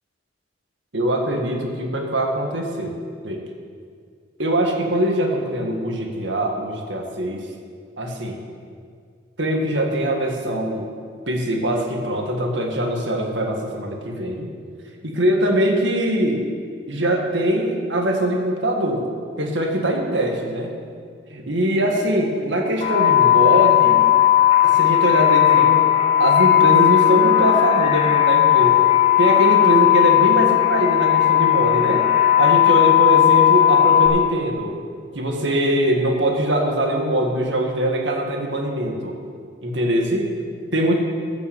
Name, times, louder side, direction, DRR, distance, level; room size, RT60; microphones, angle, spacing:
voice 1, 0.9-2.9 3.2-3.4 4.4-7.4 8.0-8.4 9.4-10.9 11.3-14.5 15.0-16.5 16.9-19.1 19.4-20.7 21.3-24.1 24.6-25.9 26.2-28.8 29.2-34.7 35.2-39.1 39.6-40.3 40.7-40.9, right 1 dB, 70° right, 1 dB, 1.7 m, -22 dB
sound 1, 22.8-34.1, left 12 dB, 30° left, 2.1 m, -16 dB
14.5 x 6.0 x 7.3 m, 2.1 s
head